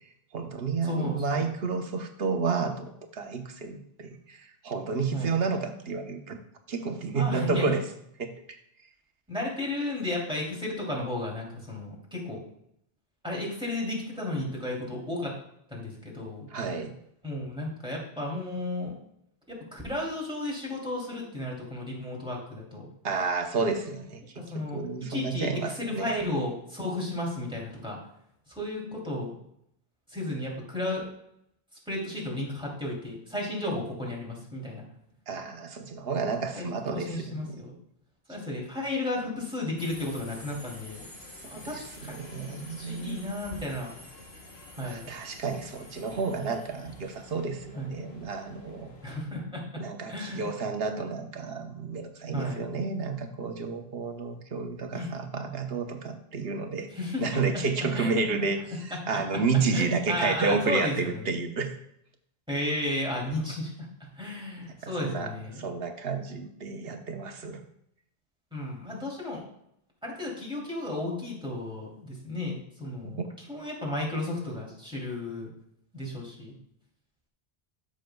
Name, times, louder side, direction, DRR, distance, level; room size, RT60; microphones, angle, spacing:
voice 1, 0.3-6.4 6.7-7.8 8.2-8.6 16.5-16.9 23.0-24.2 24.5-26.1 35.3-37.6 41.6-43.2 44.8-48.9 49.8-56.9 57.2-58.6 58.8-61.8 64.8-67.6 73.0-73.3, right 4 dB, 75° right, 6 dB, 1.1 m, -31 dB
voice 2, 0.8-1.5 5.1-5.4 7.1-7.8 9.3-12.4 13.2-15.3 15.7-16.5 17.2-18.9 19.5-22.9 24.3-24.8 25.1-25.5 25.8-28.0 28.5-29.3 30.1-31.0 31.9-34.8 36.5-37.7 38.3-41.1 41.5-42.2 42.5-43.9 44.7-45.1 47.7-47.9 49.0-49.6 50.1-50.5 52.3-52.6 54.9-55.1 56.9-57.2 57.9-58.4 58.9-59.2 59.7-61.3 62.5-63.9 64.2-65.6 68.5-69.4 70.0-73.2 73.5-75.5 75.9-76.5, left 1 dB, 5° right, -4 dB, 2.9 m, -33 dB
Subway metro underground, 39.8-49.2, left 2 dB, 85° left, 1.4 m, -48 dB
13.0 x 6.4 x 2.3 m, 0.75 s
omnidirectional pair, 1.0 m